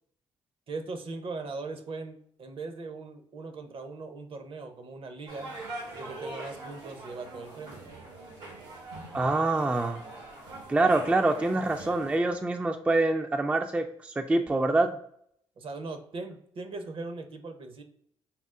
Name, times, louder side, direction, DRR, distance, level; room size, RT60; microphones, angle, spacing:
voice 1, 0.7-5.5 5.9-7.9 15.6-17.8, right 3 dB, 50° right, 7 dB, 0.6 m, -39 dB
sound 1, 5.3-12.2, right 2 dB, 85° right, 1.1 m, -43 dB
voice 2, 9.1-10.0 10.7-14.9, right 2 dB, 10° right, 6 dB, 0.3 m, -25 dB
5.5 x 2.0 x 2.4 m, 0.67 s
hypercardioid pair, 55°, 12 cm